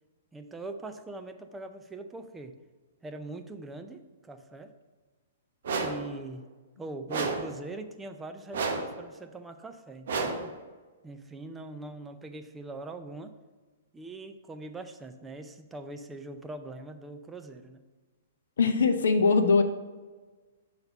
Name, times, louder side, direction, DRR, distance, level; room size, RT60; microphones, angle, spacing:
voice 1, 0.3-2.5 3.0-4.7 5.8-6.4 6.8-10.5 11.0-13.3 13.9-17.8, right 2 dB, 10° right, 7 dB, 0.5 m, -42 dB
sound 1, 5.6-6.1 7.1-7.6 8.5-9.0 10.1-10.5, right 4 dB, 65° right, 0.8 m, -31 dB
voice 2, 18.6-19.6, left 4 dB, 70° left, 8 dB, 0.5 m, -21 dB
6.8 x 4.0 x 5.3 m, 1.3 s
figure-of-eight pair, 115°, 0 cm